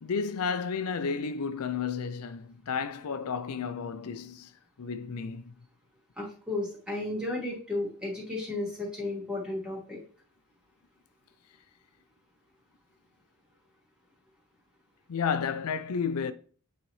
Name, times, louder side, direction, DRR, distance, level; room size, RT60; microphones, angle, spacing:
voice 1, 0.0-4.5 4.8-5.5 15.1-16.3, left 6 dB, 80° left, 0.5 m, -32 dB
voice 2, 6.2-10.0, left 2 dB, 5° right, 2.7 m, -33 dB
8.9 x 3.9 x 3.2 m
head